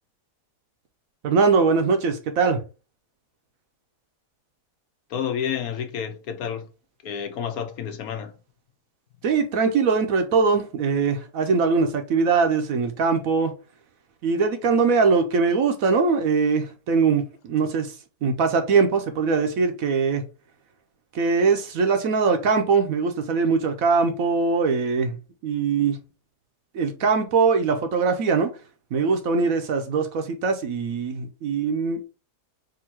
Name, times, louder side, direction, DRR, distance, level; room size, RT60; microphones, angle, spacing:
voice 1, 1.2-2.6 9.2-13.5 14.2-20.2 21.1-25.2 25.4-26.0 26.7-28.5 28.9-32.1, right 5 dB, 65° right, 1.0 m, -22 dB
voice 2, 5.1-6.7 7.0-8.3, left 8 dB, 70° left, 1.1 m, -30 dB
3.8 x 2.6 x 4.3 m
omnidirectional pair, 1.7 m